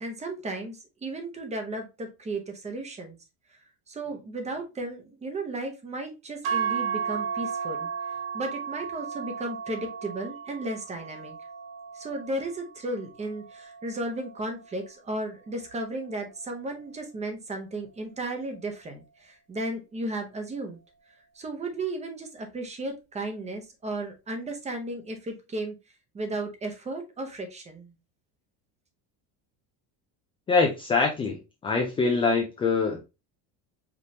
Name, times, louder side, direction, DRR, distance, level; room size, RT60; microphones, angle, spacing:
voice 1, 0.0-3.2 3.9-7.9 8.3-11.4 11.9-19.0 19.5-20.8 21.4-25.7 26.1-27.9, right 2 dB, 15° right, 4 dB, 0.8 m, -34 dB
sound 1, 6.4-14.7, right 7 dB, 55° right, 1.0 m, -34 dB
voice 2, 30.5-31.4 31.6-33.0, left 4 dB, 15° left, 1 dB, 0.3 m, -24 dB
5.1 x 3.0 x 2.8 m, 0.27 s
cardioid pair, 165°, 42 cm